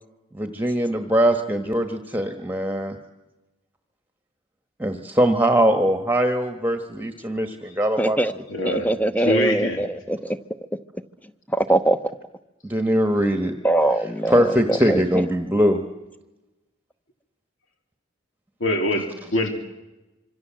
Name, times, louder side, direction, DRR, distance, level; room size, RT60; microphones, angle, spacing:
voice 1, 0.3-3.0 4.8-8.2 12.6-13.5 14.3-15.8, equal, 10° right, 7 dB, 1.4 m, -21 dB
voice 2, 8.0-8.3 8.6-10.4 11.5-12.0 13.6-15.2, right 1 dB, 10° left, 12 dB, 0.9 m, -22 dB
voice 3, 8.5-9.8 18.6-19.5, left 1 dB, 75° left, 4 dB, 3.3 m, -24 dB
26.5 x 25.0 x 7.6 m, 1.0 s
head